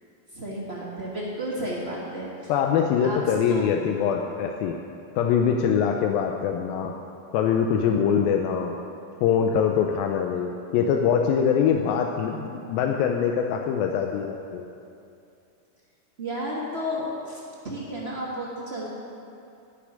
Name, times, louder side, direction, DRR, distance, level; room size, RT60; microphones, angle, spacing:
voice 1, 0.3-2.5 3.0-3.7 16.2-18.9, equal, 55° right, -5 dB, 0.6 m, -32 dB
voice 2, 2.5-4.8 5.2-6.9 7.3-8.7 9.2-14.7, left 7 dB, 85° left, 2 dB, 2.4 m, -23 dB
11.5 x 6.9 x 9.6 m, 2.6 s
omnidirectional pair, 4.1 m